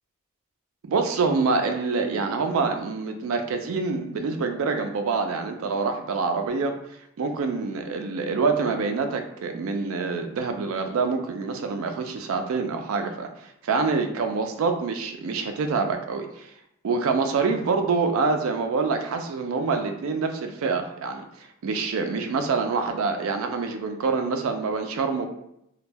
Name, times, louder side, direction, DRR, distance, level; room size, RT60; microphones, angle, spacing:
voice 1, 0.9-6.7 7.2-13.3 13.6-16.5 16.8-21.2 21.6-25.3, right 4 dB, 80° right, 6 dB, 0.4 m, -26 dB
2.2 x 2.1 x 3.3 m, 0.78 s
head